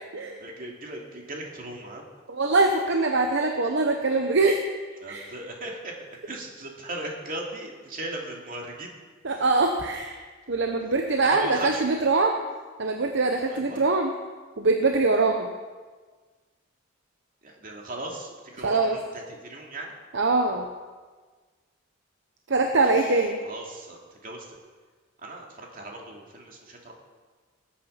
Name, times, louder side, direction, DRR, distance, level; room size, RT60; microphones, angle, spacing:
voice 1, 0.4-2.0 5.0-8.9 11.2-12.1 13.5-13.8 17.4-19.9 22.6-24.6 25.2-26.9, right 2 dB, 40° right, 0 dB, 2.6 m, -38 dB
voice 2, 2.3-4.6 5.1-5.2 9.2-10.1 10.5-12.4 12.8-14.1 14.6-15.5 18.6-19.0 20.1-20.6 22.5-23.4, right 3 dB, 60° right, 4 dB, 0.9 m, -23 dB
19.0 x 8.7 x 5.7 m, 1.4 s
head